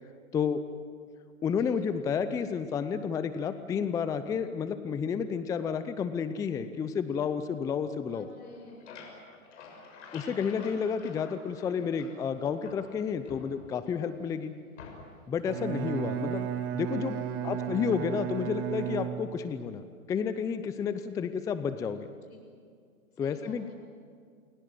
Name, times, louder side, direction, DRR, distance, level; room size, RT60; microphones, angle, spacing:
voice 1, 1.4-8.3 10.1-14.5 15.3-16.5 16.7-17.2 17.4-19.8 20.1-22.1 23.2-23.7, left 6 dB, 10° left, 11 dB, 0.6 m, -31 dB
voice 2, 8.1-9.0 17.1-17.7 22.3-22.4 23.1-23.7, left 1 dB, 80° left, 3 dB, 7.8 m, -51 dB
sound 1, 8.4-12.3 12.6-14.0 14.8-15.3, left 4 dB, 55° left, 6.9 m, -49 dB
Bowed string instrument, 15.4-19.7, right 10 dB, 35° right, 1.6 m, -34 dB
28.5 x 21.5 x 7.7 m, 2.2 s
hypercardioid pair, 125°, 44 cm